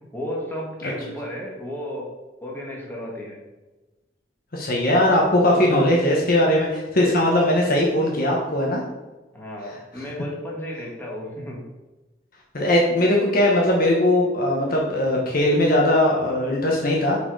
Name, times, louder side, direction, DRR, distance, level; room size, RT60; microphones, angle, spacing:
voice 1, 0.1-2.1 2.4-3.4 9.3-11.6, left 1 dB, 10° left, -3 dB, 1.6 m, -33 dB
voice 2, 4.5-8.8 12.5-17.2, left 1 dB, 55° left, -2 dB, 1.2 m, -19 dB
7.2 x 4.5 x 4.8 m, 1.1 s
head